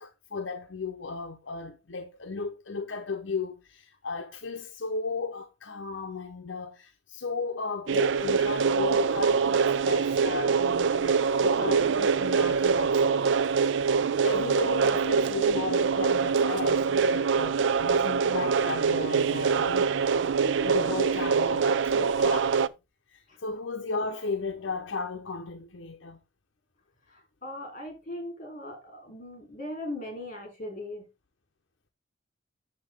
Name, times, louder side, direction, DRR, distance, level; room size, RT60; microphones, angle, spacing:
voice 1, 0.0-13.4 14.2-20.0 20.6-22.7 23.1-26.2, left 4 dB, 70° left, 0.8 m, -35 dB
sound 1, 7.9-22.7, right 5 dB, 70° right, 0.4 m, -24 dB
voice 2, 27.1-31.1, left 1 dB, 45° left, 3.4 m, -39 dB
7.9 x 6.8 x 3.5 m
head